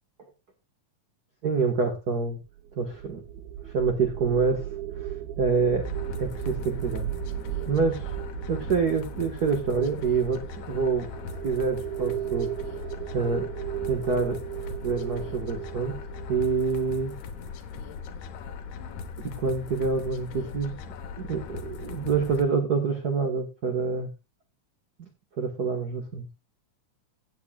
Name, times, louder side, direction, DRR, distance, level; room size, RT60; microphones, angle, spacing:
voice 1, 1.4-2.4 2.8-3.2 3.7-4.7 5.0-5.1 5.4-5.8 6.2-7.1 7.7-8.1 8.5-10.4 10.7-11.1 11.4-12.5 13.1-13.5 13.8-14.4 14.8-16.0 16.3-17.1 18.8-18.9 19.2-20.7 21.2-24.1 25.0-25.1 25.4-26.3, right 5 dB, 40° right, 3 dB, 1.4 m, -26 dB
sound 1, 2.6-17.8, right 12 dB, 70° right, 1.9 m, -36 dB
sound 2, 5.8-22.4, left 6 dB, 75° left, 2.4 m, -39 dB
17.0 x 8.3 x 2.4 m, 0.26 s
omnidirectional pair, 3.6 m